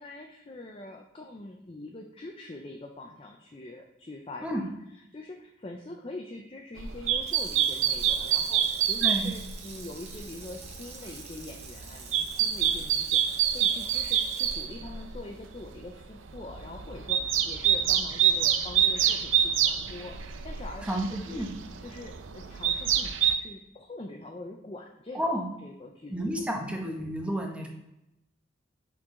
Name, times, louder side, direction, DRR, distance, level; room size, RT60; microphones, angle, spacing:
voice 1, 0.0-21.5 21.8-26.1, left 2 dB, 30° left, 2 dB, 0.5 m, -44 dB
sound 1, 6.8-9.6 10.0-10.7 11.2-15.2 15.6-15.8 16.3-23.3, right 9 dB, 80° right, 0.5 m, -27 dB
Water tap faucet / Sink (filling or washing), 7.0-16.2 16.6-16.7, right 4 dB, 35° right, 1.0 m, -48 dB
voice 2, 9.0-9.3 20.8-21.5 25.1-25.5 26.1-27.7, equal, 5° right, 1 dB, 0.9 m, -31 dB
6.0 x 4.6 x 3.7 m, 0.88 s
head